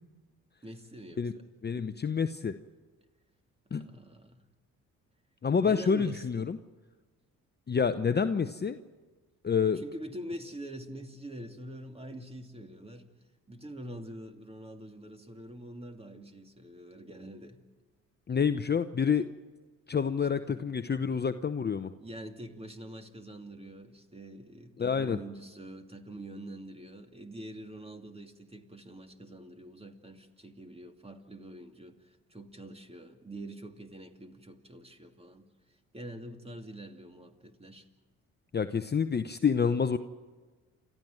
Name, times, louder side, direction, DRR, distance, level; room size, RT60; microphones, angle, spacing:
voice 1, 0.6-1.5 3.8-4.4 5.6-6.5 9.8-13.1 13.5-17.6 20.5-20.6 22.0-35.5 35.9-37.8, right 1 dB, 15° right, 6 dB, 2.5 m, -45 dB
voice 2, 1.6-2.6 3.7-3.8 5.4-6.6 7.7-8.8 9.4-9.8 18.3-19.3 19.9-21.9 24.8-25.2 38.5-40.0, left 6 dB, 30° left, 10 dB, 0.9 m, -28 dB
29.0 x 13.5 x 9.2 m, 1.3 s
hypercardioid pair, 60°, 35 cm